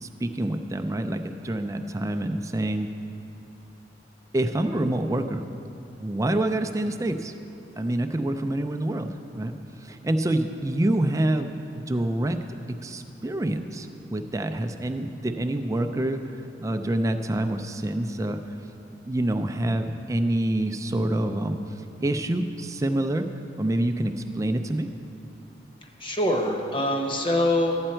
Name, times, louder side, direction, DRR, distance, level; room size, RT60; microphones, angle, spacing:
voice 1, 0.0-2.9 4.3-5.4 6.0-7.3 7.8-9.5 9.8-11.5 11.9-12.4 12.8-16.2 16.6-18.4 19.1-21.6 22.0-23.3 23.6-24.9, right 1 dB, 20° right, 7 dB, 0.4 m, -26 dB
voice 2, 26.0-27.8, left 1 dB, 30° left, 2 dB, 1.0 m, -24 dB
12.5 x 8.8 x 4.4 m, 2.7 s
head